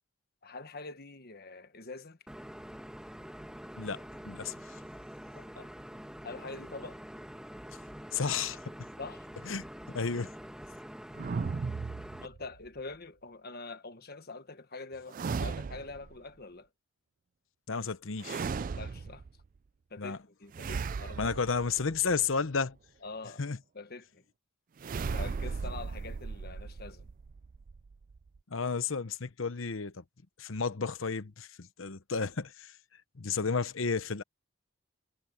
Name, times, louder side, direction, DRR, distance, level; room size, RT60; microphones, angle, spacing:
voice 1, 0.4-2.2 5.3-5.7 6.2-7.0 9.0-9.3 12.2-16.7 18.6-19.2 19.9-21.3 23.0-24.2 25.1-27.1, left 3 dB, 45° left, 1.4 m, -45 dB
sound 1, 2.3-12.3, equal, 5° right, 1.3 m, -46 dB
voice 2, 3.8-4.8 8.1-8.7 9.5-9.6 9.9-10.3 17.7-18.4 20.0-20.2 21.2-22.8 23.4-23.6 28.5-30.0 30.4-32.7 33.2-34.2, left 5 dB, 65° left, 0.9 m, -32 dB
sound 2, 11.2-12.7 15.1-16.2 18.2-19.4 20.5-22.3 24.8-28.4, right 5 dB, 40° right, 0.3 m, -37 dB
head